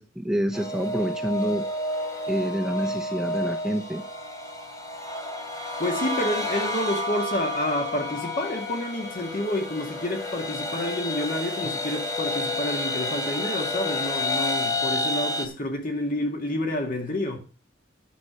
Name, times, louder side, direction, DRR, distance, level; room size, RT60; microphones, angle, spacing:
voice 1, 0.0-1.6 2.3-4.0, equal, 5° right, 0.7 m, -27 dB
sound 1, 0.5-15.5, left 1 dB, 20° left, 3.0 m, -30 dB
voice 2, 5.8-17.4, left 1 dB, 50° left, 2.0 m, -29 dB
9.9 x 7.8 x 6.2 m
head